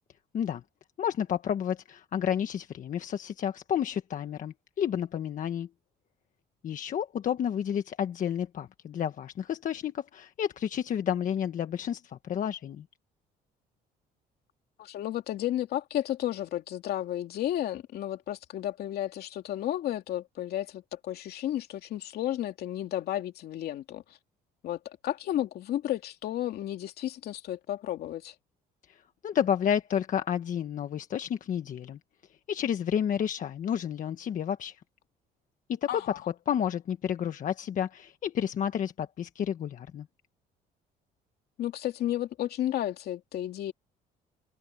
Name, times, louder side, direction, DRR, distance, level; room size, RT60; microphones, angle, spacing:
voice 1, 1.0-5.7 6.6-12.8 28.9-32.0 32.5-34.8 35.7-36.0 36.5-40.1, left 9 dB, 50° left, 1.4 m, -31 dB
voice 2, 14.8-24.2 24.6-28.3 35.9-36.2 41.6-43.7, left 12 dB, 70° left, 2.7 m, -32 dB
cardioid pair, 110°, 17 cm